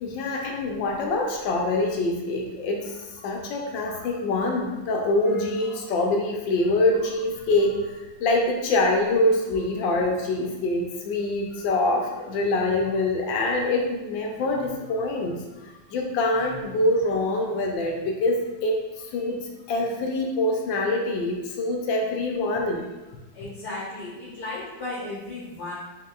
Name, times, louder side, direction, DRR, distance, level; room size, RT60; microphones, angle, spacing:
voice 1, 0.0-19.4 19.7-22.8, left 2 dB, 80° left, 1 dB, 1.3 m, -25 dB
voice 2, 23.3-25.7, left 2 dB, 65° left, -7 dB, 1.5 m, -35 dB
4.6 x 3.6 x 2.4 m, 1.1 s
omnidirectional pair, 2.0 m